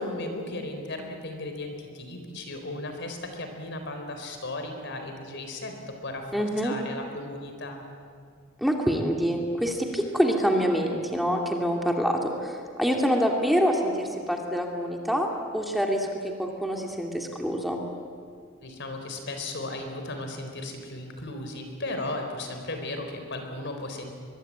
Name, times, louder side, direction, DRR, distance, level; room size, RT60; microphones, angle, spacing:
voice 1, 0.0-6.3 6.6-7.8 18.6-24.1, left 2 dB, 60° left, 5 dB, 4.2 m, -36 dB
voice 2, 6.3-6.7 8.6-15.3 15.5-17.8, equal, ahead, 1 dB, 2.3 m, -26 dB
23.5 x 22.5 x 8.7 m, 2.1 s
head